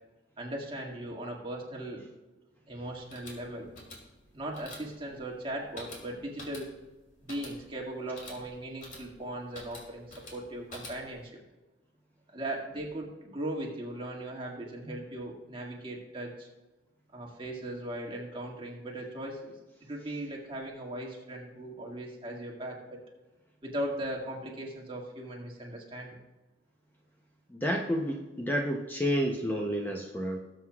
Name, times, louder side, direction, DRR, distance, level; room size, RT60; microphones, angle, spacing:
voice 1, 0.4-2.0 2.7-3.7 4.3-6.7 7.2-11.3 12.3-16.5 17.1-19.5 19.8-23.0 23.6-26.2, right 1 dB, 30° right, -2 dB, 2.0 m, -38 dB
sound 1, 2.9-11.3, left 1 dB, 45° left, 2.8 m, -49 dB
voice 2, 27.5-30.4, equal, 10° left, 1 dB, 0.7 m, -30 dB
19.0 x 7.8 x 2.4 m, 1.1 s
head